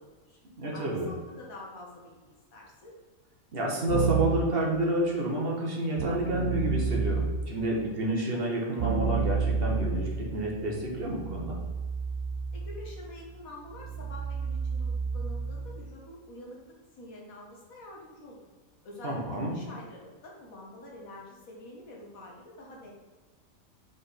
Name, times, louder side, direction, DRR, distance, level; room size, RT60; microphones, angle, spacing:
voice 1, 0.0-0.4 0.7-2.9 12.5-18.5 18.8-22.9, left 1 dB, 75° left, -2 dB, 1.8 m, -47 dB
voice 2, 0.6-1.1 3.5-11.6 19.0-19.6, right 1 dB, 45° right, -2 dB, 1.3 m, -29 dB
Keyboard (musical), 3.9-4.5 6.0-7.6 8.8-15.8, right 5 dB, 85° right, 1.1 m, -31 dB
5.0 x 4.9 x 4.1 m, 1.4 s
omnidirectional pair, 1.5 m